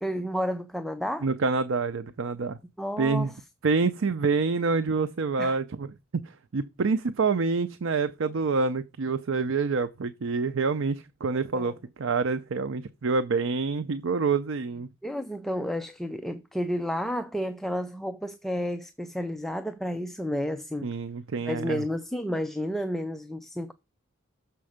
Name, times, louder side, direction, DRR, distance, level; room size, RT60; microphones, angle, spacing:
voice 1, 0.0-1.3 2.8-3.3 5.4-5.6 11.5-11.7 15.0-20.9 21.5-23.7, equal, ahead, 0.4 m, -31 dB
voice 2, 1.2-2.6 3.0-3.3 3.6-5.9 6.2-14.9 20.8-21.8, right 4 dB, 70° right, 0.5 m, -27 dB
6.9 x 5.3 x 4.9 m
head